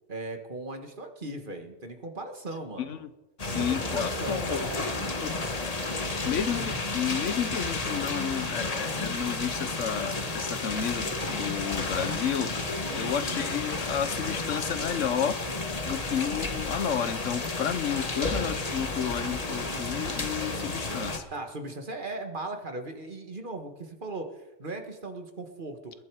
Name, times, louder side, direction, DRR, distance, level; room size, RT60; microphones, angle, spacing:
voice 1, 0.1-3.0 3.5-5.2 12.8-13.5 21.3-25.9, right 2 dB, 45° right, 5 dB, 1.7 m, -38 dB
voice 2, 2.8-3.1 3.4-4.6 5.2-5.4 6.2-12.6 12.9-15.4 15.8-21.2, left 8 dB, 85° left, 13 dB, 1.2 m, -31 dB
sound 1, 3.4-21.2, left 2 dB, 30° left, 1.4 m, -32 dB
21.0 x 11.5 x 4.7 m, 1.0 s
omnidirectional pair, 1.3 m